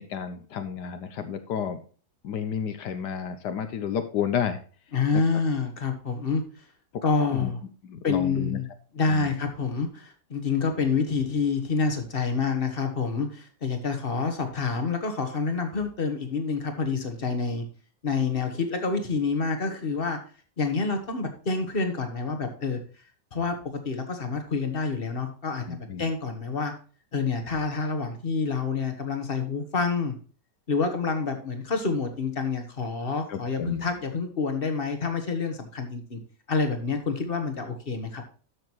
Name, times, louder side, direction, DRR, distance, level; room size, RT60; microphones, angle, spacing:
voice 1, 0.0-1.8 2.2-4.6 7.3-7.5 7.8-8.6 9.1-9.4 25.7-26.1 33.3-33.8, left 8 dB, 70° left, 9 dB, 1.4 m, -31 dB
voice 2, 4.9-6.4 7.0-7.6 8.0-8.7 8.9-17.6 18.0-20.2 20.6-22.8 23.3-26.7 27.1-30.1 30.7-36.2 36.5-38.2, left 4 dB, 35° left, 6 dB, 1.4 m, -27 dB
12.5 x 6.4 x 3.0 m, 0.40 s
omnidirectional pair, 1.9 m